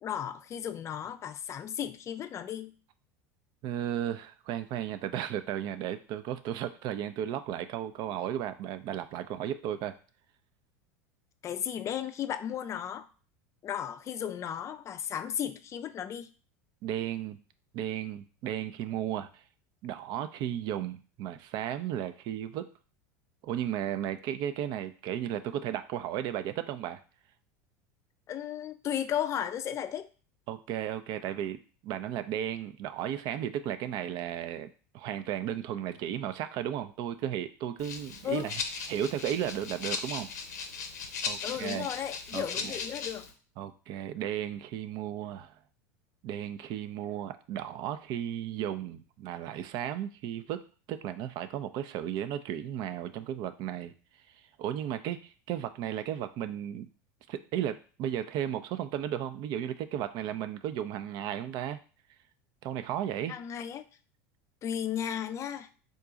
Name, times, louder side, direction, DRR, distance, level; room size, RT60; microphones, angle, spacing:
voice 1, 0.0-2.7 11.4-13.1 13.6-16.3 28.3-30.1 38.2-38.5 41.4-43.3 63.3-63.9 64.6-65.7, left 9 dB, 35° left, 10 dB, 0.4 m, -35 dB
voice 2, 3.6-10.0 16.8-17.4 17.7-19.3 19.8-22.7 23.4-27.0 30.5-34.7 34.9-38.5 38.9-40.3 41.2-41.9 42.3-42.7 43.6-45.5 46.2-50.6 50.9-53.9 54.6-56.9 57.3-61.8 62.6-63.3, right 10 dB, 55° right, 11 dB, 0.4 m, -34 dB
Rattle (instrument), 37.8-43.3, left 5 dB, 85° left, 0.6 m, -38 dB
3.7 x 2.3 x 3.9 m, 0.37 s
hypercardioid pair, 90°, 9 cm